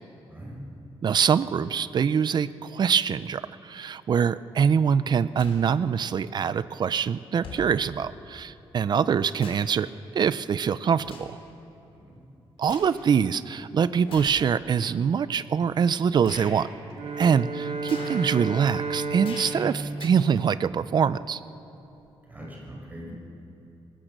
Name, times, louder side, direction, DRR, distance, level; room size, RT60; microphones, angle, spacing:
voice 1, 0.2-0.6 11.9-12.2 22.3-23.1, equal, 15° right, -3 dB, 5.8 m, -42 dB
voice 2, 1.0-11.3 12.6-16.7 17.2-21.4, right 7 dB, 45° right, 15 dB, 0.5 m, -24 dB
sound 1, 5.3-5.6 6.7-6.8 7.4-7.7 8.9-9.8 10.1-10.4 11.0-11.4 11.9-12.9 14.0-14.4 15.1-15.2 16.2-16.5 17.8-18.3 19.2-19.6 19.9-20.1, left 4 dB, 65° left, 4.2 m, -43 dB
Bowed string instrument, 16.9-21.3, right 3 dB, 85° right, 2.1 m, -33 dB
23.5 x 19.0 x 6.7 m, 2.9 s
wide cardioid pair, 160°, 10 cm